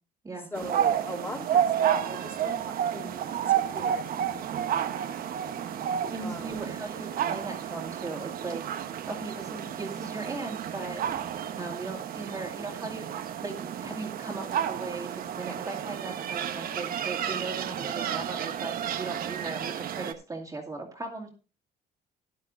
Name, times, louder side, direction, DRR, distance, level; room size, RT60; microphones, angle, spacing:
voice 1, 0.5-4.1 6.0-6.6, left 1 dB, 15° left, 0 dB, 3.1 m, -40 dB
sound 1, 0.6-20.1, right 9 dB, 60° right, 1.1 m, -31 dB
voice 2, 6.1-8.6 9.1-11.0 11.6-13.0 13.4-21.3, right 3 dB, 20° right, -1 dB, 2.4 m, -38 dB
13.5 x 11.0 x 2.6 m, 0.33 s
cardioid pair, 110°, 17 cm